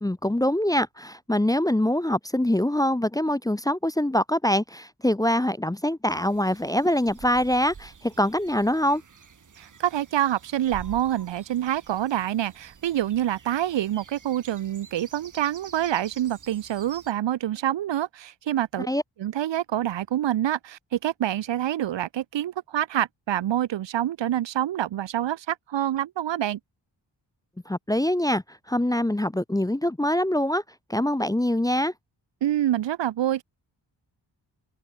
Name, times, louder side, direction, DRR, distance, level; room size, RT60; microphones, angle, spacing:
voice 1, 0.0-9.0 18.9-19.0 27.7-30.6 30.9-31.9, left 1 dB, 10° left, 0.6 m, -24 dB
sound 1, 6.1-17.1, right 6 dB, 40° right, 1.9 m, -48 dB
voice 2, 9.6-18.9 19.2-26.6 32.4-33.4, right 12 dB, 75° right, 0.7 m, -26 dB
open air
wide cardioid pair, 160°, 45 cm